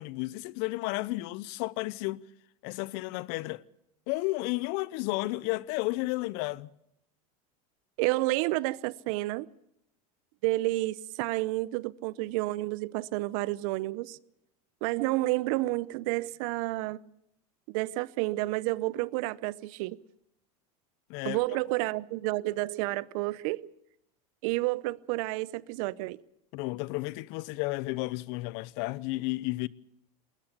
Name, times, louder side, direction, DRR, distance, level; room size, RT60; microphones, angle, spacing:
voice 1, 0.0-2.2 2.6-3.6 4.1-6.7 21.1-21.6 26.5-29.7, left 21 dB, 60° left, 0.9 m, -32 dB
voice 2, 8.0-9.5 10.4-14.2 14.8-17.0 17.7-20.0 21.2-23.7 24.4-26.2, right 20 dB, 65° right, 0.8 m, -30 dB
20.5 x 20.0 x 6.8 m
supercardioid pair, 115°, 19 cm